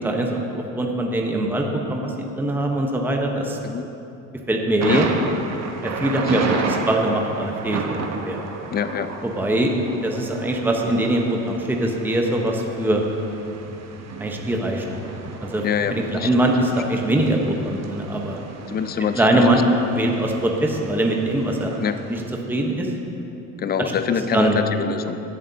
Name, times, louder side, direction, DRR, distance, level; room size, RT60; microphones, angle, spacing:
voice 1, 0.0-3.6 4.5-5.1 5.8-8.4 9.2-9.7 10.0-13.0 14.2-14.9 15.4-15.6 15.9-18.4 19.2-19.6 19.9-21.8 22.1-22.2 22.5-22.9 24.1-24.6, right 1 dB, 5° right, 1 dB, 1.0 m, -22 dB
Thunder, 4.8-22.3, right 4 dB, 45° right, 1.0 m, -33 dB
voice 2, 6.1-6.9 8.7-9.1 15.6-16.5 18.7-19.6 21.8-22.0 23.6-25.2, left 7 dB, 25° left, 11 dB, 0.5 m, -25 dB
16.5 x 7.2 x 2.8 m, 2.9 s
hypercardioid pair, 75°, 38 cm